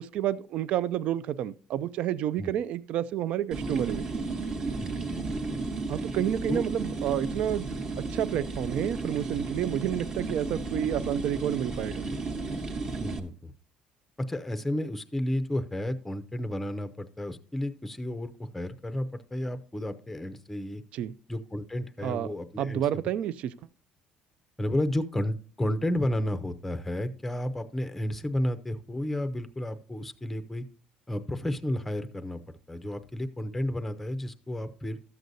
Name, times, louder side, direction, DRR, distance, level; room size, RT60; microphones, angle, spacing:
voice 1, 0.0-4.0 5.9-12.1 20.9-21.1 22.0-22.3 22.6-23.5, right 10 dB, 65° right, 0.4 m, -30 dB
sound 1, 3.5-13.2, right 3 dB, 35° right, 1.1 m, -33 dB
voice 2, 4.8-5.6 6.5-6.6 13.0-13.5 14.3-20.8 21.3-23.0 24.6-30.6 31.1-35.0, left 1 dB, 5° left, 0.5 m, -32 dB
13.0 x 7.8 x 2.7 m
cardioid pair, 145°, 2 cm